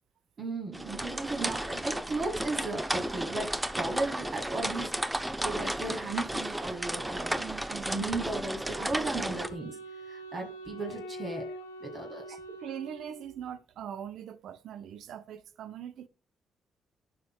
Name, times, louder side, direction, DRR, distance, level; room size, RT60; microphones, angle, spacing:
voice 1, 0.4-7.4 7.9-9.8 10.0-11.5 11.8-12.4, right 2 dB, 50° right, 1.9 m, -35 dB
sound 1, 0.7-9.5, right 1 dB, 10° right, 0.8 m, -34 dB
voice 2, 7.4-8.1 8.8-8.9 12.3-16.1, right 9 dB, 70° right, 0.6 m, -42 dB
Wind instrument woodwind instrument, 9.2-13.6, equal, 90° left, 0.6 m, -44 dB
11.5 x 4.4 x 2.3 m
hypercardioid pair, 40°, 0 cm